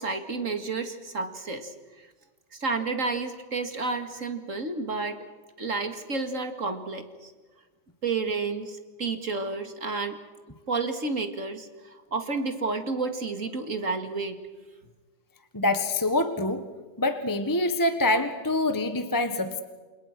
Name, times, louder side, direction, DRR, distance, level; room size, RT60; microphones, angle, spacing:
voice 1, 0.0-2.1 2.5-5.2 5.6-7.3 8.0-10.2 10.7-14.4, right 3 dB, 45° right, 7 dB, 2.6 m, -31 dB
voice 2, 15.5-16.7 17.0-19.6, left 2 dB, 10° left, 9 dB, 1.4 m, -25 dB
29.5 x 27.5 x 6.1 m, 1.3 s
omnidirectional pair, 1.9 m